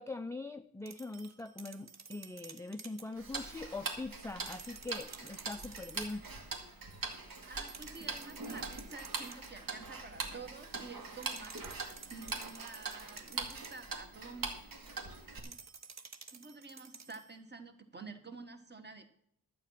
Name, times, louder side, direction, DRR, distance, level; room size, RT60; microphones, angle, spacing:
voice 1, 0.0-6.2, left 2 dB, 10° left, 8 dB, 0.4 m, -42 dB
sound 1, 0.9-3.1 4.3-6.2 7.7-9.6 11.2-13.9 15.4-17.4, right 5 dB, 45° right, 1.1 m, -52 dB
Tick-tock, 3.2-15.4, right 4 dB, 65° right, 2.2 m, -42 dB
voice 2, 7.4-14.5 15.4-15.5 16.3-19.1, right 4 dB, 25° right, 7 dB, 1.6 m, -50 dB
12.0 x 8.5 x 5.8 m, 0.68 s
wide cardioid pair, 145°, 37 cm